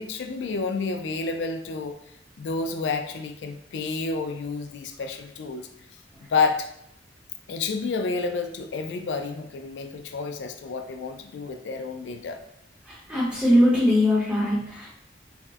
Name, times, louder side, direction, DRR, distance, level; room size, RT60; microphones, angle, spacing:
voice 1, 0.0-2.0 2.4-5.7 6.2-6.7 7.5-12.4, left 4 dB, 80° left, 6 dB, 0.4 m, -29 dB
voice 2, 12.9-14.9, left 1 dB, 5° right, -9 dB, 0.8 m, -21 dB
4.1 x 2.1 x 2.4 m, 0.73 s
head